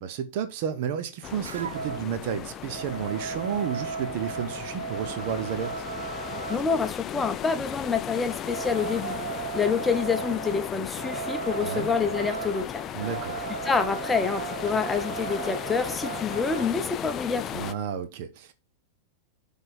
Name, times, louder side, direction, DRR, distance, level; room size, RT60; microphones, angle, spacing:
voice 1, 0.0-5.9 11.6-11.9 12.9-13.4 17.5-18.5, right 8 dB, 50° right, 0.9 m, -32 dB
sound 1, 1.2-17.7, left 10 dB, 30° left, 0.4 m, -36 dB
sound 2, 1.4-2.1 2.5-6.7 8.1-16.7, right 8 dB, 65° right, 0.4 m, -36 dB
voice 2, 6.5-9.2 9.5-12.9 13.6-17.7, left 5 dB, 15° left, 0.8 m, -27 dB
7.6 x 3.6 x 4.6 m
figure-of-eight pair, 90°, 0 cm